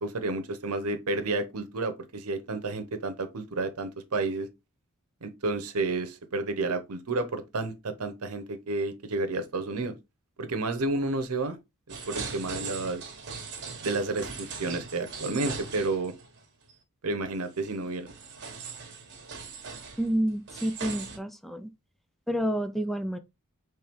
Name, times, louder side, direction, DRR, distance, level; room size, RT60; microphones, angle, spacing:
voice 1, 0.0-4.5 5.2-9.9 10.4-11.6 12.1-13.0 13.8-16.1 17.0-18.1, right 2 dB, 85° right, 0.8 m, -31 dB
sound 1, 11.9-16.4 16.7-16.8 17.5-21.2, right 5 dB, 55° right, 1.3 m, -40 dB
voice 2, 20.0-21.7 22.3-23.2, equal, ahead, 0.4 m, -29 dB
4.5 x 3.3 x 3.6 m
head